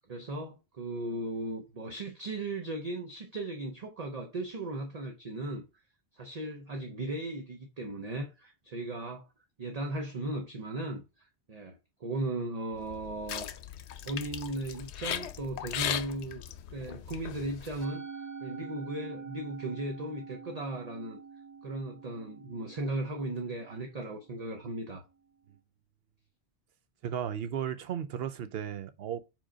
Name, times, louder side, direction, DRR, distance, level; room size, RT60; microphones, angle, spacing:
voice 1, 0.1-5.6 6.1-9.2 9.6-11.0 11.5-13.5 14.0-16.4 16.7-18.0 18.4-21.2 21.6-25.0, right 2 dB, 40° right, 0.8 m, -37 dB
sound 1, 12.8-17.8, left 10 dB, 85° left, 0.9 m, -38 dB
Musical instrument, 17.8-24.2, right 5 dB, 20° right, 0.5 m, -45 dB
voice 2, 27.0-29.2, right 9 dB, 70° right, 0.9 m, -35 dB
5.0 x 3.7 x 5.0 m
omnidirectional pair, 1.1 m